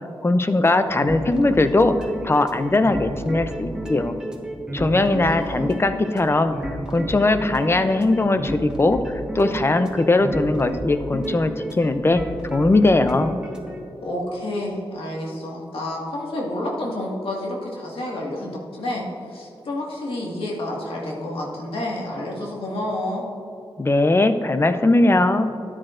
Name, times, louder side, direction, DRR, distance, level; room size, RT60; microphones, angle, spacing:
voice 1, 0.2-2.0 2.2-4.1 4.7-9.0 9.3-12.2 12.5-13.3 23.8-25.5, left 2 dB, 25° left, 10 dB, 0.5 m, -19 dB
sound 1, 0.9-13.8, right 1 dB, 10° right, 1.3 m, -32 dB
voice 2, 4.9-5.8 14.0-23.2, left 1 dB, 85° left, -3 dB, 1.9 m, -30 dB
13.0 x 9.9 x 2.6 m, 2.8 s
wide cardioid pair, 85°, 9 cm